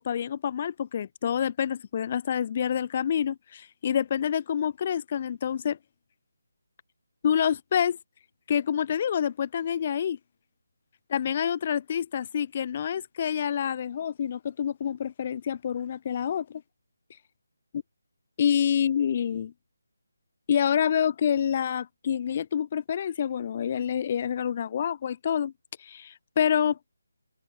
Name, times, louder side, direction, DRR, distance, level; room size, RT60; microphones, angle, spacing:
voice 1, 0.0-5.8 7.2-8.0 8.5-10.2 11.1-16.6 18.4-19.5 20.5-25.5 25.8-26.8, left 8 dB, 30° left, 5.9 m, -27 dB
open air
figure-of-eight pair, 165°, 0 cm